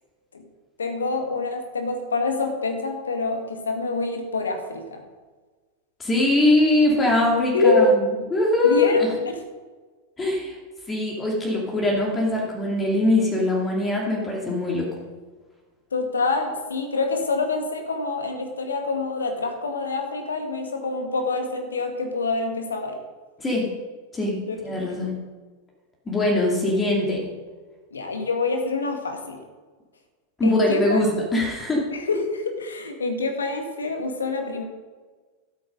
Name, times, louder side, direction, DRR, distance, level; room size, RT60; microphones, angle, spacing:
voice 1, 0.8-5.0 7.5-7.9 8.6-9.0 9.3-9.4 15.9-23.0 24.5-24.6 24.9-25.1 27.9-29.4 30.4-31.0 31.9-34.6, left 3 dB, 70° left, 5 dB, 1.9 m, -26 dB
voice 2, 6.0-9.1 10.2-10.6 10.9-14.9 23.4-23.6 24.1-24.4 24.6-25.1 26.1-27.2 30.4-31.8, left 2 dB, 15° left, -2 dB, 2.5 m, -22 dB
12.5 x 8.7 x 5.3 m, 1.4 s
figure-of-eight pair, 90°, 0 cm